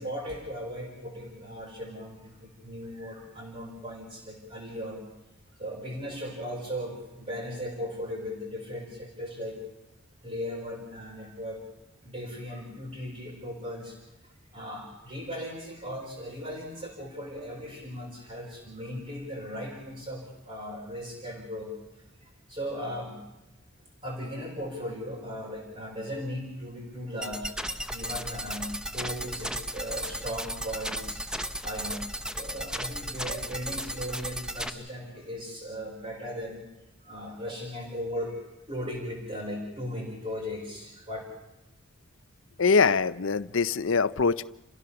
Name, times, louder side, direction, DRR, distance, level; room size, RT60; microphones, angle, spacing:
voice 1, 0.0-5.1 5.6-9.6 10.2-11.6 12.0-14.0 14.2-21.8 22.2-23.2 24.0-31.3 31.6-36.6 37.0-38.4 38.7-41.2, equal, 30° right, -5 dB, 5.1 m, -37 dB
sound 1, 27.2-34.7, right 1 dB, 5° right, 0.8 m, -35 dB
voice 2, 42.6-44.4, left 5 dB, 65° left, 16 dB, 0.7 m, -23 dB
29.5 x 16.0 x 7.1 m, 0.98 s
head